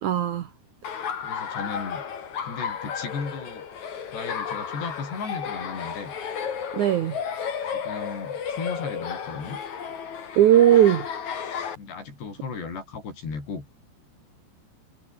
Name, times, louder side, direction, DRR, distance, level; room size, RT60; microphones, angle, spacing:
voice 1, 0.0-0.5 6.7-7.2 10.4-11.0, right 11 dB, 75° right, 1.7 m, -18 dB
Laughter, 0.8-11.8, left 7 dB, 45° left, 3.7 m, -33 dB
voice 2, 1.2-2.0 2.4-3.7 4.1-6.1 7.7-9.6 11.8-13.7, left 5 dB, 70° left, 9.5 m, -35 dB
omnidirectional pair, 5.0 m